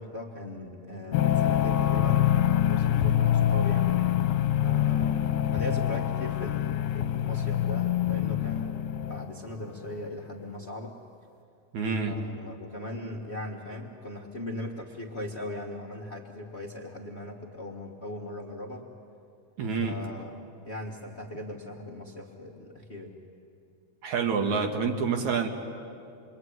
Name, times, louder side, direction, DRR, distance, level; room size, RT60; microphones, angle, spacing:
voice 1, 0.0-4.0 4.6-11.0 12.0-18.9 19.8-23.2, left 1 dB, 30° left, 0 dB, 1.4 m, -39 dB
sound 1, 1.1-9.4, left 11 dB, 70° left, 2.1 m, -25 dB
voice 2, 11.7-12.2 19.6-20.0 24.0-25.5, right 5 dB, 70° right, 4 dB, 3.0 m, -27 dB
28.5 x 22.0 x 9.5 m, 2.5 s
omnidirectional pair, 3.5 m